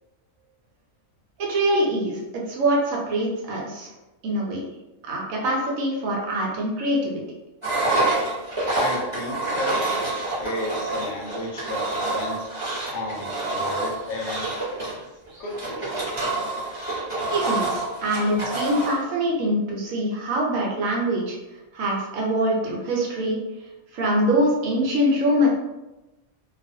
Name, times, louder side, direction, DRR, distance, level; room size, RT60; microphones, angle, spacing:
voice 1, 1.4-2.2 2.5-3.9 4.2-4.6 5.0-7.2 17.3-21.4 21.7-23.4 23.9-25.5, equal, 75° right, -2 dB, 1.1 m, -24 dB
Engine, 7.6-19.0, right 2 dB, 25° right, 1.0 m, -27 dB
voice 2, 8.8-12.5 12.9-14.5 15.4-16.0, left 1 dB, 65° left, -2 dB, 0.8 m, -33 dB
2.4 x 2.3 x 2.6 m, 1.0 s
omnidirectional pair, 1.4 m